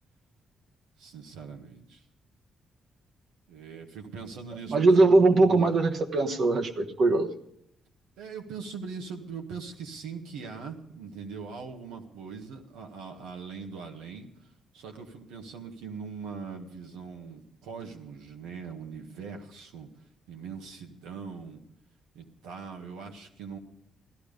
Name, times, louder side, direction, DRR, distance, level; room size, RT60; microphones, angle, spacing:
voice 1, 1.0-2.0 3.5-5.7 8.2-19.9 20.3-21.6 22.1-23.6, right 5 dB, 90° right, 3 dB, 1.6 m, -41 dB
voice 2, 4.7-7.3, right 3 dB, 60° right, 5 dB, 1.3 m, -21 dB
15.5 x 12.0 x 5.2 m, 0.77 s
supercardioid pair, 65°, 0 cm